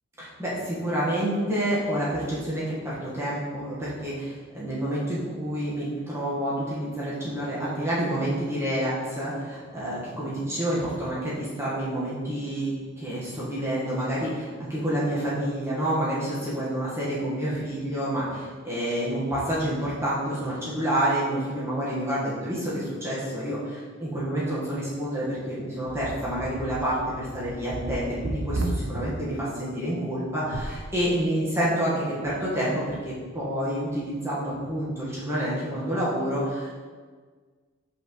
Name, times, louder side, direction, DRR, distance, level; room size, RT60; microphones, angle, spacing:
voice 1, 0.2-36.7, right 1 dB, 15° right, -9 dB, 1.3 m, -28 dB
sound 1, 25.9-29.0 30.4-30.8, right 2 dB, 70° right, 0.7 m, -33 dB
6.0 x 5.4 x 3.1 m, 1.5 s
head